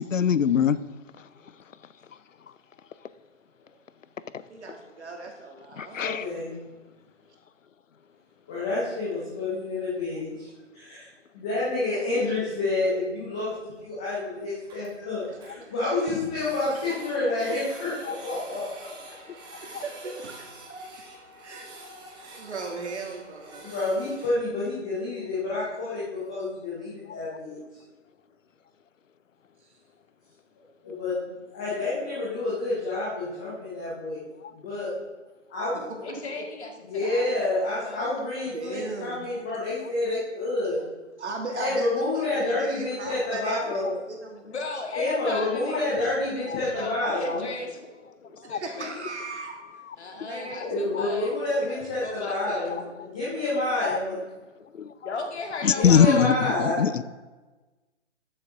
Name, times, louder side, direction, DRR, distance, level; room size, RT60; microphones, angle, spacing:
voice 1, 0.0-0.8 1.2-1.3 4.3-4.4 5.7-6.3 17.5-17.6 18.0-18.2 19.7-19.8 27.1-27.2 34.4-34.5 39.8-39.9 43.5-43.9 45.1-45.2 45.7-45.9 46.5-46.6 47.0-47.4 48.4-48.6 49.7-50.0 50.4-50.5 50.9-51.0 52.5-53.1 53.7-54.0 54.6-54.9 55.6-57.0, left 7 dB, 80° left, 0.6 m, -25 dB
voice 2, 4.5-6.0 11.9-12.3 15.3-15.7 16.7-17.0 19.8-21.0 21.4-21.9 22.3-23.8 35.7-36.2 38.5-39.3 41.2-44.5 48.4-49.5 50.1-50.6 51.6-51.7, right 3 dB, 65° right, 2.5 m, -38 dB
voice 3, 5.9-6.5 8.5-10.3 10.7-11.0 11.3-18.6 23.6-27.6 30.8-34.2 34.5-34.9 35.5-35.8 36.9-40.8 41.5-44.0 44.9-47.4 50.6-54.1 55.7-56.7, left 2 dB, 5° left, 0.4 m, -28 dB
Printer, 12.7-12.8 13.0-13.1 13.5-13.6 13.8-13.9 14.2-14.3 14.5-15.5 16.0-24.3, right 2 dB, 10° right, 1.8 m, -47 dB
voice 4, 36.0-38.1 44.4-48.9 50.0-51.3 51.7-52.8 55.0-56.3, left 3 dB, 60° left, 2.0 m, -37 dB
13.0 x 7.6 x 3.7 m
figure-of-eight pair, 140°, 37 cm